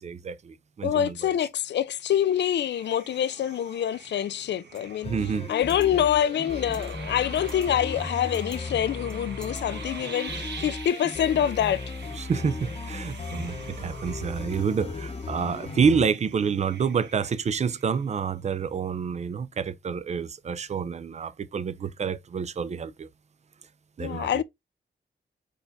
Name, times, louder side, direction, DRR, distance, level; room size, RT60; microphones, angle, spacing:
voice 1, 0.0-1.4 5.0-5.5 12.2-23.1 24.0-24.4, right 6 dB, 40° right, 0.4 m, -28 dB
voice 2, 0.8-5.1 5.5-11.8 24.0-24.4, left 10 dB, 75° left, 0.4 m, -26 dB
sound 1, 2.1-18.4, right 5 dB, 75° right, 1.3 m, -45 dB
sound 2, 4.7-4.8 5.5-5.9 6.7-7.0 7.3-7.7 8.0-8.6 9.1-9.6, left 1 dB, 5° left, 1.0 m, -48 dB
sound 3, 5.0-16.1, left 3 dB, 35° left, 0.8 m, -36 dB
4.6 x 4.4 x 2.6 m
wide cardioid pair, 150°, 18 cm